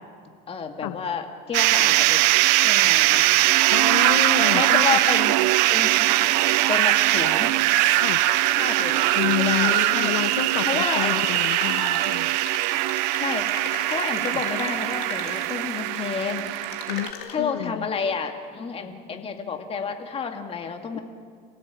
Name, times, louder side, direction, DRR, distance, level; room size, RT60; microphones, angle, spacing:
voice 1, 0.5-2.2 2.6-3.3 4.5-5.4 5.7-6.1 6.7-7.5 8.6-10.1 10.6-11.2 13.2-16.5 17.3-21.0, left 5 dB, 30° left, 4 dB, 2.3 m, -30 dB
sound 1, 1.5-17.1, right 18 dB, 85° right, 0.7 m, -21 dB
voice 2, 3.7-4.9 8.0-8.2 9.1-12.3 14.3-14.4 16.9-17.9 20.9-21.0, left 15 dB, 90° left, 12 dB, 1.0 m, -29 dB
sound 2, 6.1-17.3, left 7 dB, 50° left, 3.7 m, -39 dB
27.5 x 17.0 x 8.6 m, 2.2 s
cardioid pair, 135°, 21 cm